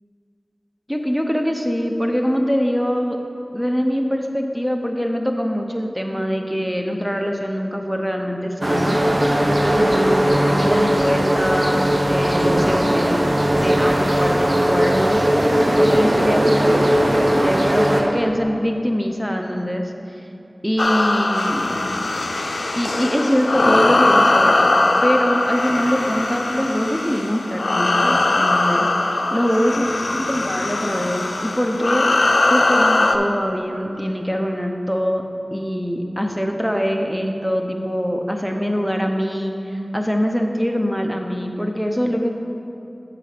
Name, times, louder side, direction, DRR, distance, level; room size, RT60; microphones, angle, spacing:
voice 1, 0.9-3.2 3.5-9.0 9.5-13.2 13.5-15.2 15.8-19.9 20.6-21.7 22.7-24.7 25.0-32.0 32.5-35.2 35.5-42.3, equal, 5° right, 3 dB, 0.7 m, -23 dB
sound 1, 8.6-18.0, equal, 50° right, 0.9 m, -18 dB
sound 2, 20.8-33.2, left 2 dB, 85° left, 0.4 m, -20 dB
7.6 x 4.0 x 6.6 m, 2.8 s
wide cardioid pair, 45°, 0 cm